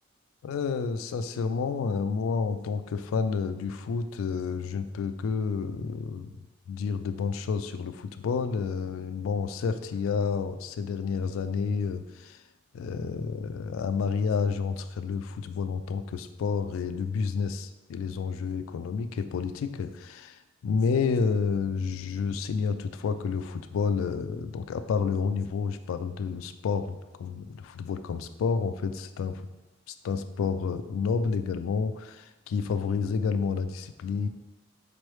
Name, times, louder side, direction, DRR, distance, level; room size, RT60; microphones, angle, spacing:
voice 1, 0.4-6.3 6.7-12.4 12.7-20.4 20.6-29.4 29.9-34.3, left 5 dB, 85° left, 11 dB, 0.3 m, -30 dB
4.4 x 3.1 x 3.1 m, 1.0 s
head